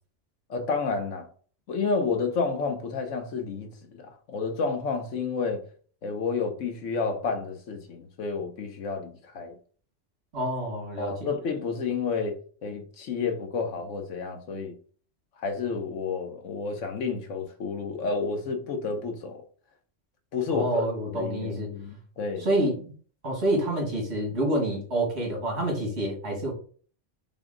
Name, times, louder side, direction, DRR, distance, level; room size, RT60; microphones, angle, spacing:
voice 1, 0.5-1.3 1.7-5.6 6.0-9.5 11.0-12.3 12.6-14.7 15.4-19.4 20.3-22.5, left 4 dB, 90° left, 1.3 m, -30 dB
voice 2, 10.3-11.3 20.5-21.7 22.4-22.9 23.2-26.5, right 1 dB, 65° right, 2.2 m, -28 dB
5.4 x 2.4 x 3.8 m
omnidirectional pair, 1.2 m